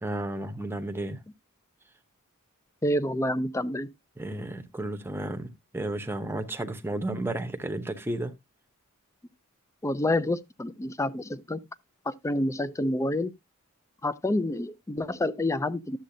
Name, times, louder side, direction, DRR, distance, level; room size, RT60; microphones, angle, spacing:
voice 1, 0.0-1.2 4.2-8.4, right 1 dB, 10° right, 0.8 m, -33 dB
voice 2, 2.8-3.9 9.8-11.6 12.1-13.3 14.0-16.0, left 1 dB, 15° left, 0.4 m, -28 dB
11.5 x 7.4 x 2.6 m
head